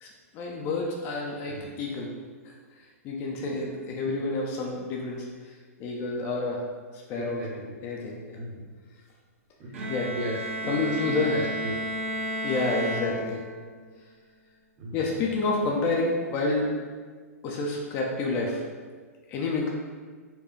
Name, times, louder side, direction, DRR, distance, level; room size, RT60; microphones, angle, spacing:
voice 1, 0.0-2.1 2.4-2.5 3.0-6.6 6.9-7.4 7.8-8.4 9.9-10.1 10.7-11.4 12.4-13.4 14.9-16.8 17.4-18.6 19.3-19.7, left 3 dB, 30° left, -1 dB, 0.4 m, -29 dB
voice 2, 7.1-7.8 8.4-8.6 9.6-11.7 13.1-13.2 14.8-15.1, right 1 dB, 30° right, -3 dB, 0.8 m, -36 dB
Bowed string instrument, 9.7-13.7, right 1 dB, 55° right, 0.8 m, -33 dB
4.3 x 2.3 x 3.1 m, 1.5 s
figure-of-eight pair, 110°, 8 cm